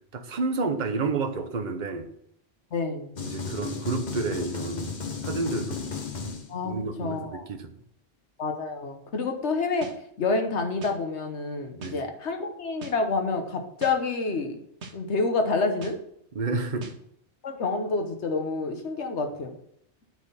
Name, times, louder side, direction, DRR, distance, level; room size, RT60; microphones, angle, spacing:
voice 1, 0.1-2.1 3.2-4.9 5.2-5.8 6.6-7.7 11.8-12.0 16.3-16.9, right 3 dB, 45° right, 6 dB, 1.0 m, -30 dB
voice 2, 2.7-3.2 6.5-7.5 8.4-14.6 14.9-16.0 17.4-19.5, left 3 dB, 80° left, 5 dB, 1.4 m, -28 dB
sound 1, 3.2-6.8, left 5 dB, 45° left, 1.0 m, -34 dB
sound 2, 9.8-10.0 10.8-11.0 11.8-12.0 12.8-13.0 13.8-14.0 14.8-15.0 15.8-16.0 16.8-17.0, right 3 dB, 75° right, 1.3 m, -40 dB
8.8 x 4.3 x 5.6 m, 0.70 s
omnidirectional pair, 1.2 m